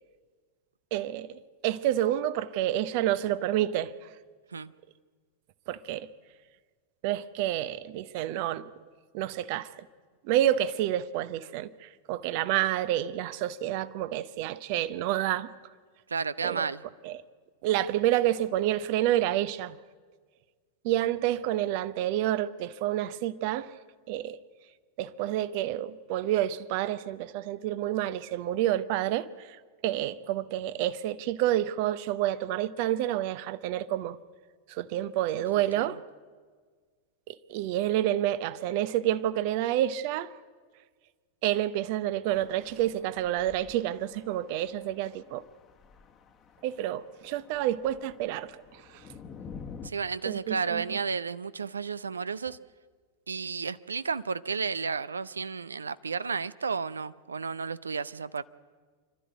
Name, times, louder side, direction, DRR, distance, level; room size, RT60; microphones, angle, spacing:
voice 1, 0.9-4.1 5.7-6.1 7.0-8.7 9.1-9.9 10.2-15.5 16.4-16.7 17.0-17.2 17.6-19.8 20.8-23.7 24.1-24.4 25.0-34.2 34.7-36.0 37.3-40.3 41.4-45.4 46.6-49.0 50.2-51.0, right 13 dB, 45° right, 0.8 m, -29 dB
voice 2, 16.1-16.8 35.8-35.9 49.8-52.6 53.3-58.4, right 5 dB, 75° right, 0.5 m, -32 dB
sound 1, 42.3-49.9, left 6 dB, 25° left, 1.2 m, -49 dB
25.0 x 12.5 x 9.1 m
figure-of-eight pair, 90°, 0 cm